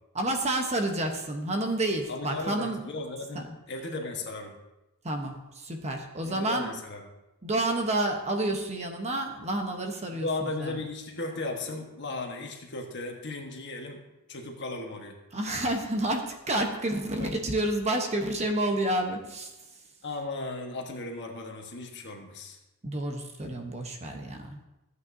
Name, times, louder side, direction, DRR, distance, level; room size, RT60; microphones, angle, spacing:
voice 1, 0.1-2.8 3.3-3.4 5.0-6.7 7.4-10.8 15.3-19.5 22.8-24.6, right 1 dB, 30° right, 4 dB, 1.0 m, -29 dB
voice 2, 2.1-4.6 6.2-7.1 10.1-14.0 14.3-15.2 17.2-17.3 20.0-22.6, left 2 dB, 55° left, 2 dB, 1.3 m, -36 dB
14.5 x 8.2 x 2.7 m, 0.99 s
head